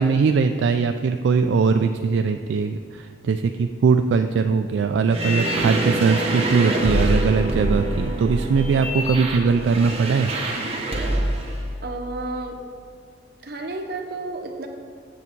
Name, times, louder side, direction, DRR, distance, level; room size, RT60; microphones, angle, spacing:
voice 1, 0.0-10.3, right 5 dB, 75° right, 7 dB, 0.3 m, -21 dB
sound 1, 5.1-11.5, right 1 dB, 30° right, 1.1 m, -25 dB
voice 2, 11.8-12.6 13.4-14.7, right 2 dB, 55° right, 3 dB, 0.9 m, -31 dB
8.5 x 6.7 x 4.5 m, 2.3 s
head